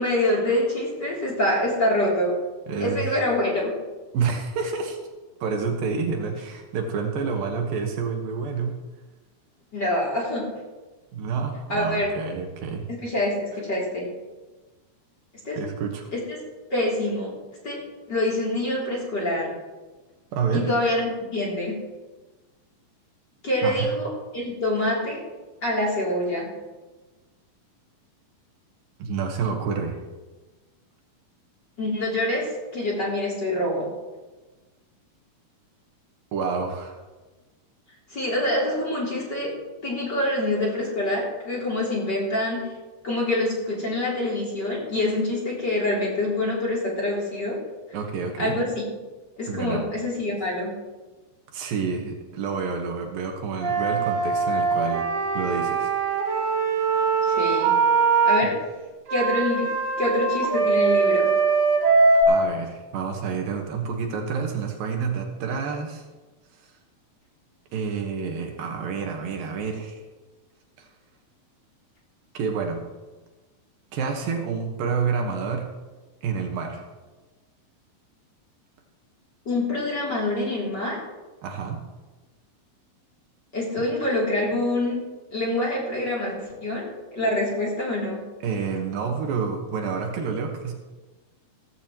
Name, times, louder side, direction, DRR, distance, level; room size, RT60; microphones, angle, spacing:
voice 1, 0.0-2.4 2.8-3.7 9.7-10.5 11.7-12.1 13.0-14.1 15.4-15.6 16.1-16.4 16.7-17.4 17.6-19.6 20.5-21.8 23.4-25.2 25.6-26.5 31.8-33.9 38.1-39.6 39.8-42.7 43.0-47.6 48.4-48.8 49.4-50.7 57.2-57.8 58.3-58.6 59.1-59.7 60.0-61.3 79.5-81.0 83.5-88.2, left 1 dB, 30° left, -4 dB, 3.4 m, -26 dB
voice 2, 2.7-3.1 4.1-5.1 5.4-8.8 11.1-12.9 15.6-16.1 20.3-20.7 23.6-23.9 29.0-30.0 36.3-37.0 47.9-48.6 49.5-49.8 51.5-55.1 55.3-55.9 56.3-56.6 62.3-66.0 67.7-70.0 70.8-70.9 72.3-72.8 73.9-75.7 76.2-76.8 81.4-81.8 88.4-90.7, right 5 dB, 75° right, 3 dB, 3.0 m, -28 dB
Wind instrument woodwind instrument, 53.6-58.4 59.1-62.2, right 4 dB, 45° right, 3.7 m, -22 dB
15.5 x 15.0 x 3.0 m, 1.2 s
omnidirectional pair, 4.3 m